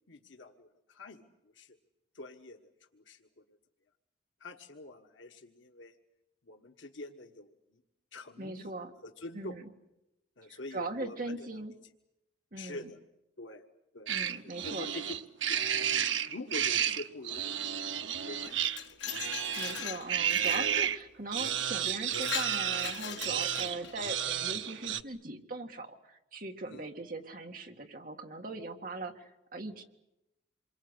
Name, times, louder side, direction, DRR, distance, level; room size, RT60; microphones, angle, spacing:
voice 1, 0.1-1.2 1.6-1.7 2.1-3.2 4.4-5.9 6.5-7.5 8.1-8.7 9.0-9.5 10.4-11.5 12.6-13.0 13.4-13.6 13.9-14.3 14.6-15.0 15.5-15.6 15.9-18.0 18.3-19.1 26.7-26.9, left 2 dB, 85° left, 4 dB, 1.4 m, -46 dB
voice 2, 8.4-9.0 9.3-9.7 10.5-11.7 12.5-12.9 14.1-14.9 19.5-29.8, right 2 dB, 45° right, 4 dB, 1.9 m, -40 dB
sound 1, 14.1-21.0 21.3-25.0, right 9 dB, 80° right, 0.9 m, -32 dB
Glass, 18.4-20.7 21.4-21.5 21.9-24.0, left 9 dB, 70° left, 1.2 m, -40 dB
27.5 x 23.0 x 8.1 m, 0.91 s
head